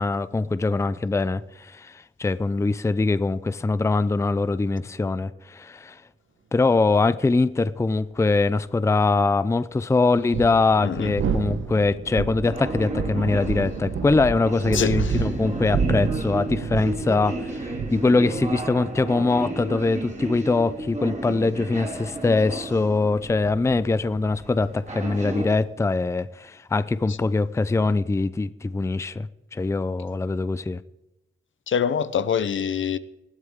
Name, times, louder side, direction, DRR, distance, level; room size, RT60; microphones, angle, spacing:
voice 1, 0.0-6.0 6.5-30.8, left 3 dB, 15° left, 0.4 m, -23 dB
sound 1, 7.9-8.0 10.1-25.7, right 6 dB, 90° right, 1.0 m, -31 dB
voice 2, 10.8-11.1 14.7-15.1 31.7-33.0, left 7 dB, 70° left, 0.8 m, -24 dB
sound 2, 12.4-25.5, right 2 dB, 35° right, 2.5 m, -34 dB
20.0 x 13.0 x 3.6 m
wide cardioid pair, 100°, 21 cm